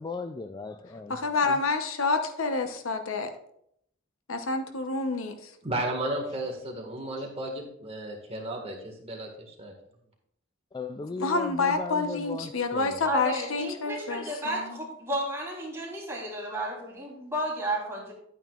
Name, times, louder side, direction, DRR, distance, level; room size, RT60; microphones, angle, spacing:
voice 1, 0.0-1.2 1.5-1.6 7.2-7.3 10.7-13.1, left 3 dB, 20° left, 8 dB, 0.3 m, -37 dB
voice 2, 1.1-3.3 4.3-5.5 11.2-14.8, left 3 dB, 80° left, 7 dB, 0.9 m, -28 dB
voice 3, 5.6-9.7, right 1 dB, 30° right, 1 dB, 1.8 m, -34 dB
voice 4, 13.0-18.1, right 1 dB, 15° right, -5 dB, 3.4 m, -33 dB
11.0 x 9.0 x 2.4 m, 0.72 s
head